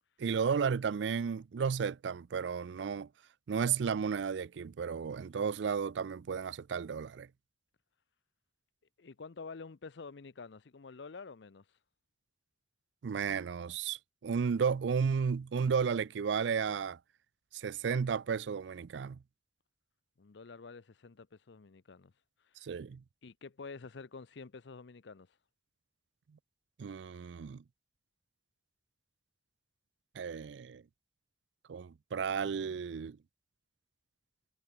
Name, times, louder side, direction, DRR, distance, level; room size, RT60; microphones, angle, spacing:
voice 1, 0.2-3.1 3.5-7.3 13.0-17.0 17.5-19.2 22.6-23.0 26.8-27.6 30.2-30.8 31.7-33.2, right 6 dB, 75° right, 0.4 m, -33 dB
voice 2, 9.0-11.6 20.2-22.1 22.4-22.7 23.2-25.3, left 4 dB, 70° left, 0.6 m, -48 dB
head